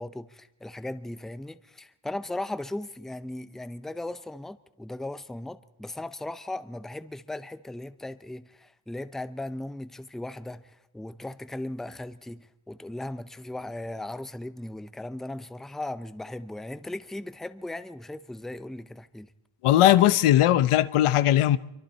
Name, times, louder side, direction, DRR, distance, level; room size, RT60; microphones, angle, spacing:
voice 1, 0.0-19.3, left 1 dB, ahead, 0.6 m, -37 dB
voice 2, 19.6-21.6, left 13 dB, 85° left, 0.9 m, -19 dB
25.5 x 24.0 x 4.4 m
cardioid pair, 115°, 49 cm